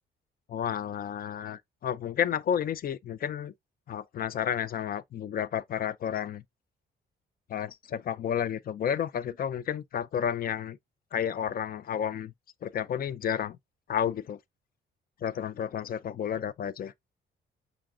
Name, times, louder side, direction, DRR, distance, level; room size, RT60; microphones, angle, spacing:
voice 1, 0.5-3.5 3.9-6.4 7.5-10.8 11.1-12.3 12.6-13.6 13.9-14.4 15.2-16.9, left 9 dB, 50° left, 0.4 m, -31 dB
5.1 x 2.8 x 2.4 m
cardioid pair, 90°, 20 cm